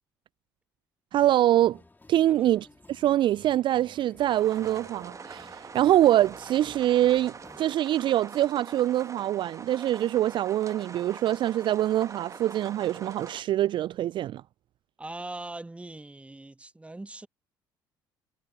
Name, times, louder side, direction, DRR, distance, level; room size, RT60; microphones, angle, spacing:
sound 1, 1.1-7.6, left 3 dB, 15° left, 2.6 m, -55 dB
voice 1, 1.1-1.8 2.1-14.4, right 13 dB, 45° right, 0.4 m, -24 dB
sound 2, 4.2-13.4, right 5 dB, 30° right, 1.4 m, -44 dB
sound 3, 4.5-13.4, right 17 dB, 75° right, 1.5 m, -54 dB
voice 2, 15.0-17.3, right 2 dB, 10° right, 1.3 m, -41 dB
figure-of-eight pair, 50°, 11 cm